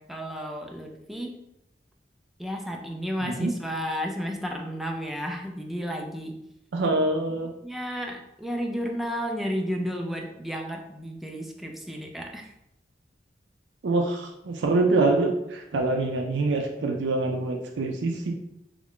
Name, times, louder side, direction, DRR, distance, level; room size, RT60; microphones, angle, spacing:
voice 1, 0.0-1.4 2.4-6.4 7.3-12.5, equal, ahead, 1 dB, 0.4 m, -32 dB
voice 2, 6.7-7.5 13.8-18.3, right 2 dB, 80° right, 2 dB, 0.4 m, -25 dB
3.1 x 2.4 x 3.5 m, 0.84 s
head